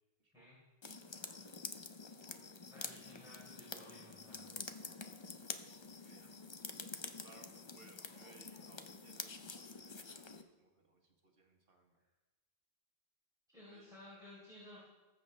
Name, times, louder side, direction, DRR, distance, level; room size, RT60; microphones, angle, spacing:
voice 1, 0.2-0.5 1.0-1.6 6.0-6.3 7.2-12.0 13.7-13.9, right 3 dB, 60° right, 2 dB, 1.5 m, -65 dB
sound 1, 0.8-10.4, left 4 dB, 30° left, 0.6 m, -48 dB
voice 2, 2.7-4.6 13.5-14.8, left 1 dB, 5° right, -9 dB, 3.9 m, -56 dB
19.5 x 7.8 x 3.4 m, 1.2 s
omnidirectional pair, 1.1 m